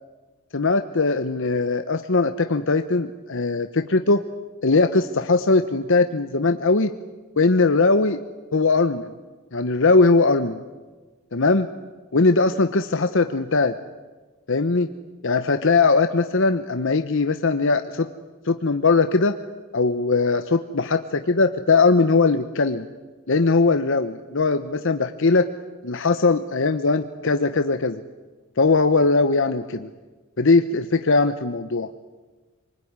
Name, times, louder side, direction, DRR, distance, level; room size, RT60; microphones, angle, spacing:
voice 1, 0.5-4.2 4.6-6.9 7.4-8.2 8.5-9.1 9.5-10.6 11.3-11.7 12.1-13.7 14.5-14.9 15.2-18.1 18.5-19.4 19.7-22.9 23.3-25.5 25.8-28.0 28.6-29.9 30.4-31.9, left 3 dB, 65° left, 8 dB, 1.0 m, -20 dB
27.5 x 20.5 x 9.6 m, 1.3 s
head